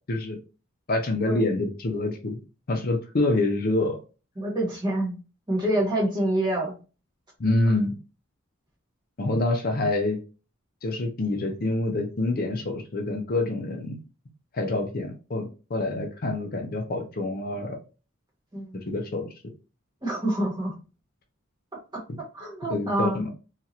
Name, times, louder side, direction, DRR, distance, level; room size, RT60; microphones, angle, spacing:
voice 1, 0.1-0.4 0.9-2.4 2.7-4.0 7.4-8.0 9.2-10.2 10.8-14.0 14.5-17.8 18.7-19.3 22.7-23.3, left 2 dB, 45° left, 0.5 m, -26 dB
voice 2, 4.4-5.1 5.5-6.7 18.5-18.8 20.0-20.8 21.9-22.0 22.3-23.2, right 1 dB, 20° right, 1.2 m, -26 dB
2.8 x 2.4 x 2.8 m
head